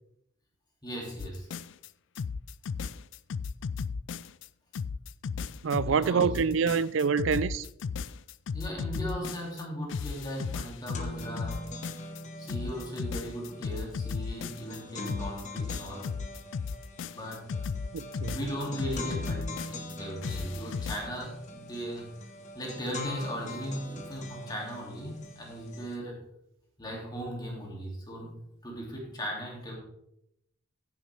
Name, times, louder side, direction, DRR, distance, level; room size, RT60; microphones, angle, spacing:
voice 1, 0.8-1.5 5.5-6.4 8.5-11.7 12.4-16.1 17.1-17.5 18.3-22.1 22.5-26.2 26.8-28.3 28.6-29.8, equal, 20° left, 2.7 m, -38 dB
sound 1, 1.2-1.9 2.1-4.5 4.7-9.6 9.9-12.2 12.5-14.8 15.1-19.9 20.2-21.1, left 5 dB, 65° left, 0.4 m, -35 dB
voice 2, 5.6-7.7 17.9-18.4, right 6 dB, 70° right, 0.4 m, -26 dB
sound 2, 10.0-10.1 10.4-26.0, left 1 dB, 35° left, 1.4 m, -42 dB
15.0 x 7.2 x 3.5 m
head